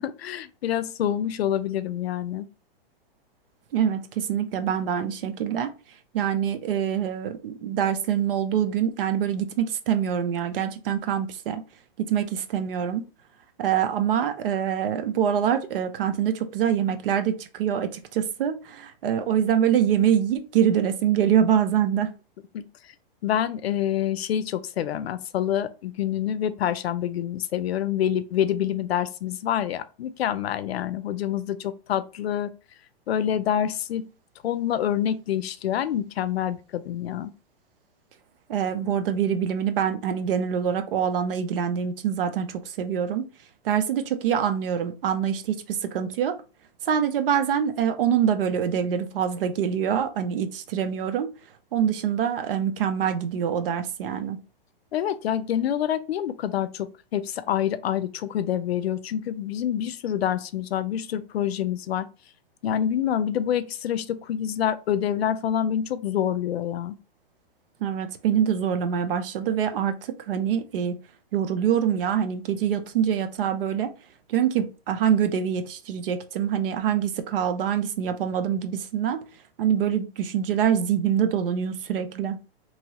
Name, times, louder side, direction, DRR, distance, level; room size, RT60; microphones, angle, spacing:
voice 1, 0.0-2.5 22.5-22.9 23.2-32.5 33.1-34.1 34.4-37.3 54.9-62.1 62.6-66.9, left 10 dB, 80° left, 0.5 m, -27 dB
voice 2, 3.7-5.7 6.1-11.6 12.1-13.0 13.6-22.1 38.5-43.3 43.6-46.3 46.8-51.3 51.7-54.4 67.8-71.0 71.3-73.9 74.3-79.2 79.6-82.4, right 8 dB, 65° right, 0.7 m, -25 dB
3.0 x 2.8 x 2.8 m
hypercardioid pair, 130°, 30 cm